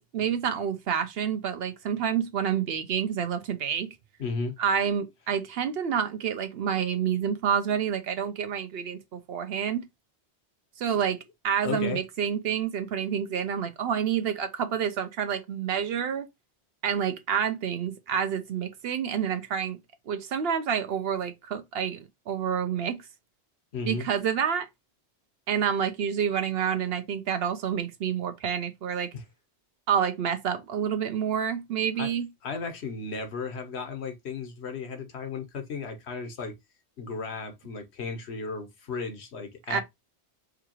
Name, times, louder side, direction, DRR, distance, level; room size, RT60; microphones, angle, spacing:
voice 1, 0.0-4.0 4.6-9.9 10.8-16.3 16.8-19.8 20.1-23.0 23.8-24.7 25.5-29.1 29.9-32.3 39.7-39.8, right 8 dB, 70° right, 0.8 m, -28 dB
voice 2, 4.2-4.6 10.9-11.0 11.6-12.0 23.7-24.1 29.1-29.2 32.0-32.1 32.4-36.5 37.0-39.8, left 4 dB, 75° left, 1.2 m, -34 dB
4.8 x 2.3 x 2.9 m
omnidirectional pair, 1.1 m